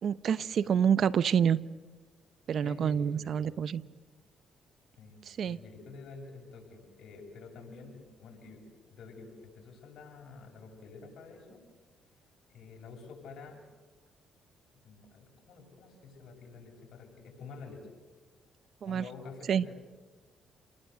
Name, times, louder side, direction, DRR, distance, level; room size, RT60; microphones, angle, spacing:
voice 1, 0.0-1.6 2.5-3.8 5.3-5.6 18.8-19.0 19.5-19.6, right 8 dB, 60° right, 17 dB, 0.8 m, -27 dB
voice 2, 2.6-3.6 5.0-11.6 12.5-13.6 14.8-17.9 18.8-19.7, left 4 dB, 65° left, 0 dB, 7.9 m, -49 dB
29.5 x 20.5 x 8.0 m, 1.3 s
supercardioid pair, 70°, 0 cm